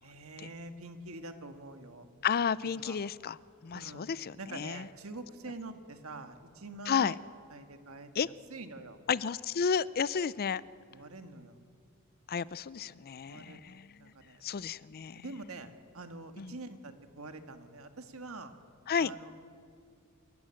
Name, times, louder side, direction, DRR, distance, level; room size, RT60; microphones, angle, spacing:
voice 1, 0.0-2.1 2.6-3.0 3.7-4.1 4.4-7.2 7.5-9.0 10.9-11.6 13.3-14.4 15.1-18.5 19.0-19.3, right 2 dB, 70° right, 8 dB, 1.7 m, -46 dB
voice 2, 2.2-3.4 3.6-4.8 6.9-7.1 8.2-8.3 9.1-10.6 12.3-13.9 14.4-15.2 16.4-16.5 18.9-19.1, left 6 dB, 45° left, 19 dB, 0.4 m, -32 dB
28.5 x 14.0 x 8.9 m, 2.3 s
head